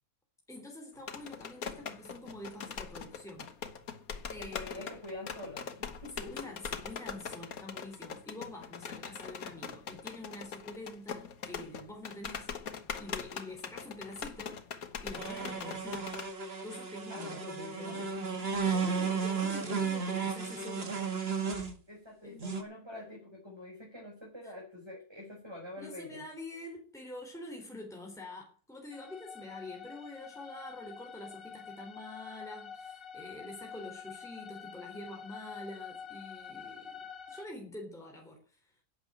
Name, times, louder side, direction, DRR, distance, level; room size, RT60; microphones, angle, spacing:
voice 1, 0.5-3.5 4.3-4.9 6.3-12.5 13.0-14.7 15.0-16.2 16.6-21.0 22.2-22.4 24.4-24.5 25.8-38.7, left 1 dB, ahead, 1 dB, 3.6 m, -46 dB
sound 1, 1.0-16.3, left 6 dB, 70° left, 1.8 m, -42 dB
voice 2, 4.4-6.6 17.1-18.1 19.3-19.5 21.9-26.3, left 1 dB, 15° right, -2 dB, 4.8 m, -46 dB
sound 2, 15.2-21.7 22.4-22.6, right 5 dB, 40° right, 2.1 m, -34 dB
sound 3, 28.9-37.5, left 7 dB, 40° left, 1.7 m, -47 dB
11.0 x 8.5 x 8.9 m, 0.39 s
omnidirectional pair, 1.6 m